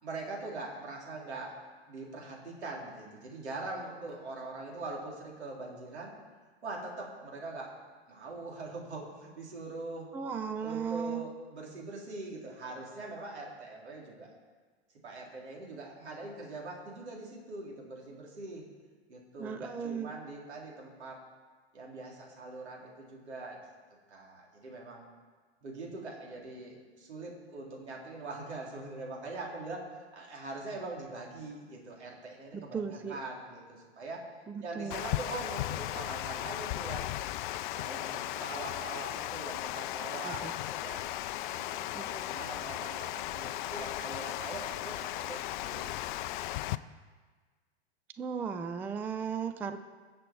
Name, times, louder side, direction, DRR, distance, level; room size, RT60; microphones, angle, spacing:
voice 1, 0.0-6.1 6.6-7.8 8.1-10.1 10.6-14.3 15.0-18.7 19.1-21.2 21.7-23.6 24.1-25.1 25.6-34.3 34.6-37.2 37.7-41.0 41.5-46.1 46.6-46.8, right 2 dB, 80° right, -2 dB, 3.9 m, -42 dB
voice 2, 10.1-11.2 19.4-20.1 32.5-33.2 34.5-35.0 40.2-40.5 41.9-42.3 48.2-49.8, right 6 dB, 5° right, 9 dB, 0.3 m, -36 dB
Water, 34.9-46.8, left 15 dB, 45° left, 0.5 m, -36 dB
21.5 x 7.6 x 4.6 m, 1.4 s
hypercardioid pair, 110°, 33 cm